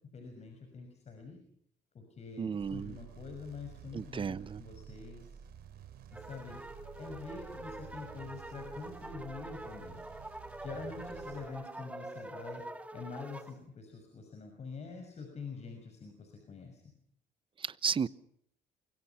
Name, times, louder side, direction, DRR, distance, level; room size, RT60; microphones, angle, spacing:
voice 1, 0.1-1.4 1.9-5.3 6.1-6.6 7.0-10.0 10.6-12.6 12.9-16.8, left 4 dB, 40° left, 4 dB, 6.1 m, -46 dB
voice 2, 2.4-3.0 3.9-4.6 17.6-18.1, right 6 dB, 30° right, 17 dB, 0.9 m, -34 dB
sound 1, 2.6-11.5, right 9 dB, 65° right, 4.0 m, -51 dB
sound 2, 6.1-13.5, right 1 dB, 10° right, 2.3 m, -45 dB
28.5 x 24.5 x 5.8 m, 0.67 s
cardioid pair, 110°, 17 cm